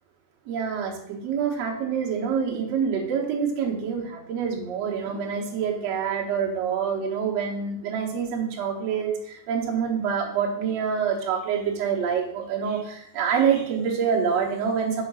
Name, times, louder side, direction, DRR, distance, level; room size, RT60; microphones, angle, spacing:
voice 1, 0.5-15.0, right 7 dB, 70° right, -1 dB, 1.6 m, -26 dB
5.8 x 4.9 x 5.5 m, 0.74 s
omnidirectional pair, 4.9 m